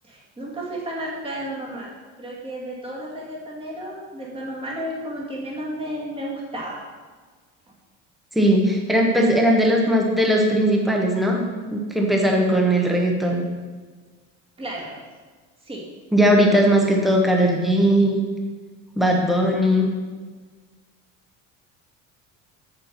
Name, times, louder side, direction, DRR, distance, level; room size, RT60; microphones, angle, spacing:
voice 1, 0.0-1.9 2.2-6.8 14.6-15.0 15.6-15.8, right 1 dB, 15° right, -3 dB, 2.2 m, -32 dB
voice 2, 8.3-11.4 11.7-13.4 16.1-18.2 19.0-19.9, equal, ahead, 0 dB, 1.1 m, -19 dB
7.5 x 6.9 x 5.8 m, 1.4 s
cardioid pair, 150°, 32 cm